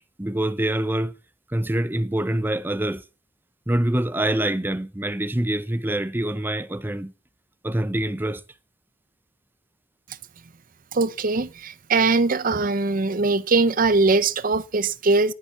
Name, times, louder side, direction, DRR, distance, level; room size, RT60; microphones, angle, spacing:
voice 1, 0.2-1.1 1.5-3.0 3.7-7.1 7.6-8.4, right 1 dB, 10° right, 0.6 m, -25 dB
voice 2, 10.9-15.3, right 3 dB, 45° right, 0.7 m, -21 dB
19.5 x 7.3 x 7.0 m
head